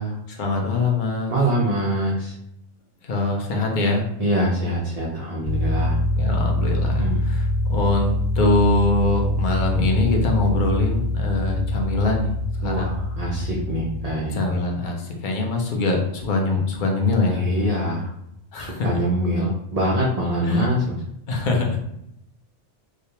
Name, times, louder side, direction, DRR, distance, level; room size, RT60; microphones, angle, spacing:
voice 1, 0.3-1.4 3.0-4.1 5.9-12.3 12.6-13.0 14.3-17.4 18.5-19.0 20.4-20.7 21.3-21.8, left 3 dB, 55° left, 1 dB, 0.6 m, -23 dB
voice 2, 1.3-2.4 4.2-6.0 7.0-7.2 12.6-14.4 17.3-18.1 18.6-21.0, right 1 dB, 80° right, -3 dB, 0.3 m, -24 dB
sound 1, 5.4-14.1, left 1 dB, 70° left, 1.0 m, -24 dB
2.3 x 2.2 x 2.8 m, 0.79 s
omnidirectional pair, 1.2 m